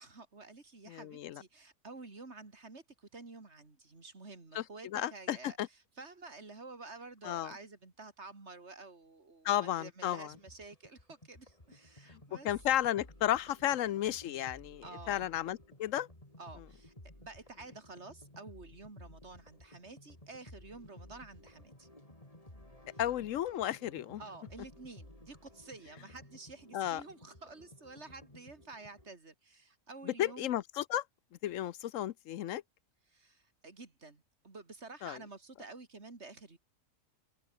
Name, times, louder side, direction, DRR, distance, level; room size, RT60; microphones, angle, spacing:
voice 1, 0.0-5.6 6.0-12.5 14.8-15.3 16.4-21.9 24.2-30.5 33.1-36.6, right 3 dB, 60° right, 3.3 m, -50 dB
voice 2, 0.9-1.4 4.5-5.7 7.2-7.5 9.4-10.3 12.1-12.2 12.4-16.1 23.0-24.2 26.7-27.0 30.0-31.0 31.4-32.6 35.0-35.2, left 12 dB, 80° left, 1.0 m, -33 dB
sound 1, 10.3-29.1, left 1 dB, 25° left, 5.4 m, -56 dB
omnidirectional pair, 1.3 m